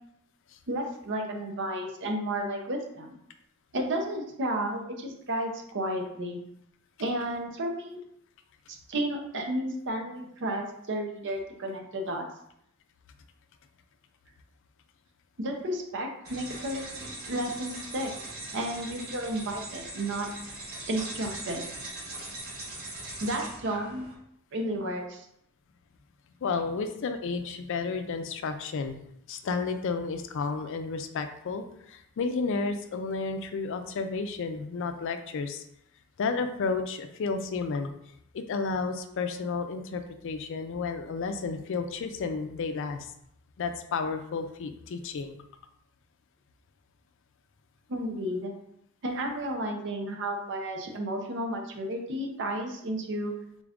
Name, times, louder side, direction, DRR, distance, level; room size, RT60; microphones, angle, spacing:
voice 1, 0.7-3.2 3.7-6.4 7.0-8.0 8.7-12.3 15.4-18.1 18.5-20.3 20.9-21.8 23.2-24.1 24.5-25.3 47.9-48.5 49.0-53.3, right 1 dB, 60° right, 3 dB, 0.7 m, -32 dB
sound 1, 16.2-24.1, right 2 dB, 85° right, 1.4 m, -40 dB
voice 2, 26.4-29.0 29.3-35.6 36.2-37.9 38.3-43.1 43.6-45.4, left 4 dB, 65° left, 8 dB, 0.4 m, -32 dB
3.8 x 2.4 x 3.5 m, 0.74 s
head